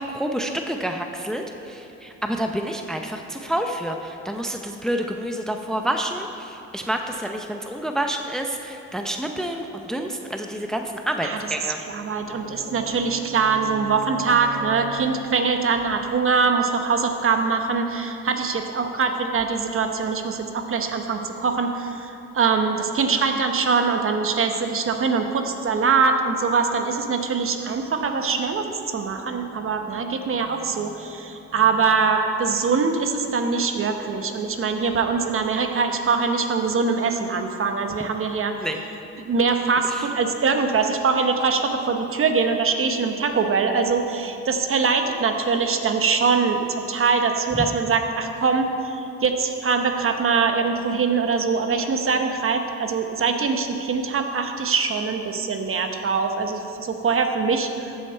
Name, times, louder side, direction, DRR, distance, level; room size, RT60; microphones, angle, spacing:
voice 1, 0.0-11.8 38.6-38.8 39.9-40.1, right 1 dB, ahead, 4 dB, 0.6 m, -28 dB
voice 2, 11.9-38.5 39.3-57.9, right 5 dB, 45° right, 5 dB, 1.0 m, -23 dB
sound 1, 12.2-15.7, right 1 dB, 60° left, 1.8 m, -40 dB
14.5 x 6.5 x 4.5 m, 2.8 s
cardioid pair, 90°, 30 cm